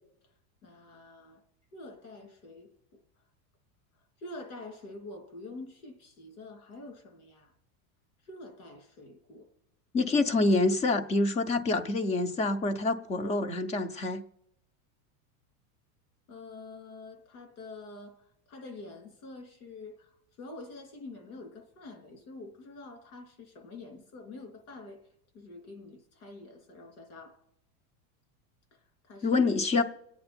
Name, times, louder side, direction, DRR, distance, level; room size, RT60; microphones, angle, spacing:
voice 1, 0.6-1.4 1.7-2.7 4.2-7.5 8.3-9.5 16.3-18.1 18.5-20.1 20.4-25.0 25.3-27.4 29.1-29.5, left 2 dB, 85° left, 3.3 m, -46 dB
voice 2, 9.9-14.2 29.2-29.8, left 3 dB, 15° left, 0.5 m, -26 dB
26.0 x 8.8 x 4.4 m
supercardioid pair, 160°, 43 cm